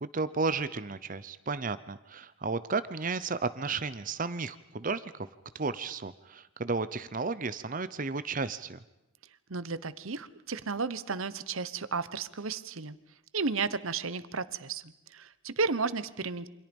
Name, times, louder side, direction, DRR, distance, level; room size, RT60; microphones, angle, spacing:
voice 1, 0.0-5.3 5.5-8.8, right 4 dB, 40° right, 14 dB, 0.8 m, -33 dB
voice 2, 9.5-13.0 13.3-16.5, right 4 dB, 70° right, 15 dB, 1.1 m, -33 dB
28.5 x 25.5 x 5.4 m, 0.90 s
head